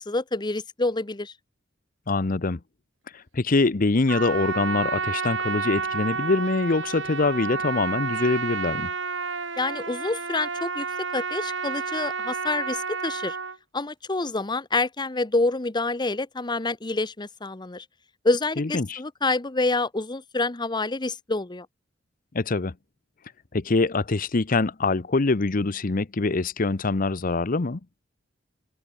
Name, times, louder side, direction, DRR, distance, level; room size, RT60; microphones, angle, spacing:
voice 1, 0.0-1.3 9.6-10.9 11.1-13.4 13.7-17.8 18.2-21.7, left 2 dB, 25° left, 1.0 m, -27 dB
voice 2, 2.1-2.6 3.1-8.9 18.6-19.0 22.3-22.7 23.5-27.8, left 3 dB, 45° left, 0.8 m, -24 dB
Trumpet, 4.1-13.6, right 4 dB, 85° right, 4.7 m, -30 dB
head